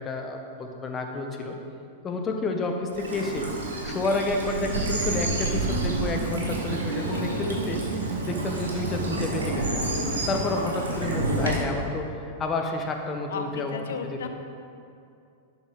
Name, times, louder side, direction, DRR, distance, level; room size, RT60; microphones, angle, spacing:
voice 1, 0.0-1.6 2.0-3.5 3.8-7.8 8.2-9.7 10.3-13.7 14.0-14.3, left 2 dB, 25° left, 3 dB, 0.9 m, -30 dB
Bird vocalization bird call bird song / Stream, 2.9-11.6, right 1 dB, 80° right, 1.4 m, -30 dB
sound 1, 4.6-9.7, right 5 dB, 60° right, 0.7 m, -32 dB
voice 2, 6.9-7.6 13.3-14.3, left 5 dB, 70° left, 6 dB, 0.6 m, -35 dB
11.0 x 4.1 x 3.7 m, 2.5 s
figure-of-eight pair, 100°, 0 cm